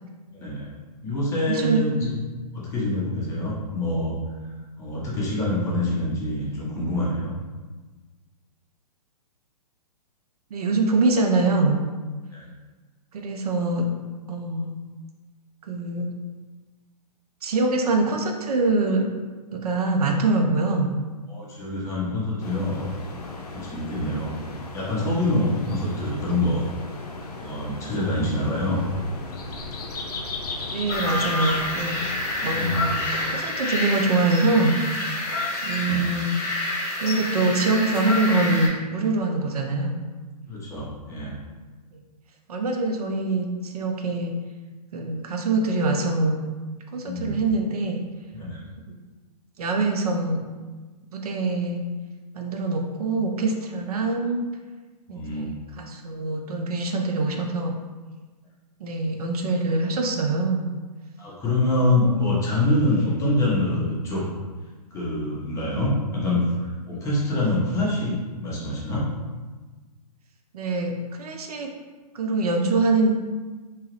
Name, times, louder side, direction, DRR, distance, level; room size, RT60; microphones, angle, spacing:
voice 1, 0.3-0.7 1.0-2.2 2.5-4.1 4.8-7.3 12.3-12.5 21.3-24.3 24.7-26.7 27.4-28.8 32.5-32.8 35.8-36.0 40.5-41.3 47.0-47.4 48.3-48.7 55.1-55.5 61.2-64.2 64.9-69.1, left 1 dB, 15° left, -6 dB, 0.7 m, -25 dB
voice 2, 1.5-1.8 10.5-11.8 13.1-13.9 14.3-14.7 15.7-16.1 17.4-19.1 19.5-20.9 23.8-24.0 30.7-32.0 32.4-33.0 33.3-34.8 35.6-36.3 37.0-40.0 41.9-42.0 42.5-44.3 44.9-46.4 46.9-48.0 49.6-50.4 51.1-51.8 52.3-54.4 55.1-57.7 58.8-60.6 70.5-71.7 72.1-73.1, right 2 dB, 65° right, 3 dB, 0.5 m, -24 dB
sound 1, 22.4-33.4, left 2 dB, 70° left, 0.6 m, -36 dB
sound 2, 30.9-38.7, left 1 dB, 40° left, 1.1 m, -28 dB
2.9 x 2.3 x 3.1 m, 1.3 s
hypercardioid pair, 130°, 21 cm